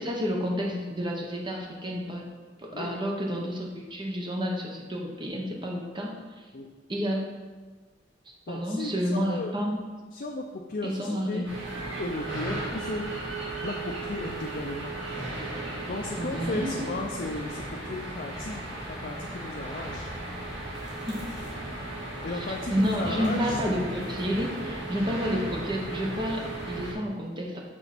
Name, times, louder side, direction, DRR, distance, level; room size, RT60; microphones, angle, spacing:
voice 1, 0.0-2.2 2.6-6.1 6.9-7.3 8.5-9.8 10.8-11.5 16.2-16.8 21.0-21.2 22.3-27.6, equal, 25° right, 0 dB, 1.0 m, -30 dB
voice 2, 8.5-9.6 10.1-11.5 12.0-13.1 13.6-14.9 15.9-20.1 22.2-23.8, left 2 dB, 50° left, 2 dB, 0.5 m, -35 dB
sound 1, 11.4-26.9, right 2 dB, 80° right, 2.2 m, -36 dB
6.1 x 3.9 x 5.9 m, 1.3 s
head